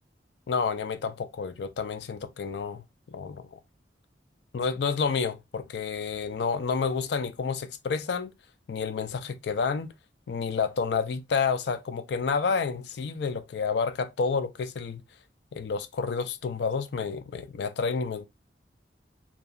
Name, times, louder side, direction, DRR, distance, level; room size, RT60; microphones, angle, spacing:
voice 1, 0.5-2.8 3.1-3.6 4.5-8.3 8.7-9.9 10.3-15.0 15.5-18.3, left 5 dB, 65° left, 0.4 m, -29 dB
2.7 x 2.2 x 2.3 m
head